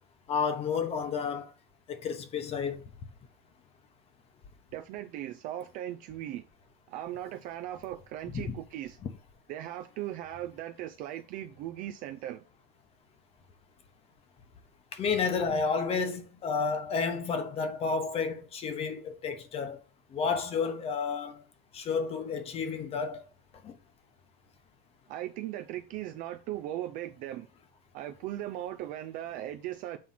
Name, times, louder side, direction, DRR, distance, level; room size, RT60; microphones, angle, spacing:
voice 1, 0.3-1.5 1.9-2.8 8.3-8.5 9.0-9.1 14.9-19.8 20.1-21.4 21.7-23.2 23.6-23.7, left 5 dB, 20° left, 0.9 m, -31 dB
voice 2, 4.7-6.4 6.9-9.0 9.5-12.4 25.1-27.5 27.9-30.0, right 13 dB, 30° right, 0.4 m, -38 dB
7.5 x 4.2 x 4.2 m
supercardioid pair, 165°, 29 cm